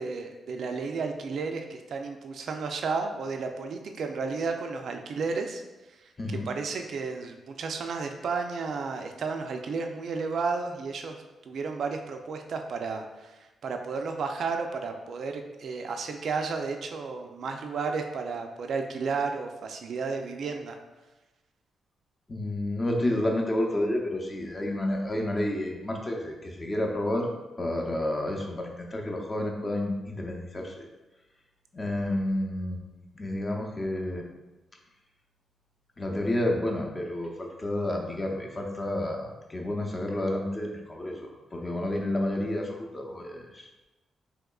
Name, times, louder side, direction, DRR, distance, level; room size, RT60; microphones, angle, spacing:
voice 1, 0.0-5.6 5.9-6.0 6.5-11.2 11.5-20.8, right 4 dB, 65° right, 4 dB, 0.3 m, -32 dB
voice 2, 6.2-6.5 22.3-27.3 27.6-30.9 31.7-34.2 36.0-43.7, left 1 dB, 30° left, 0 dB, 0.6 m, -30 dB
3.5 x 2.9 x 2.3 m, 1.1 s
cardioid pair, 80°, 0 cm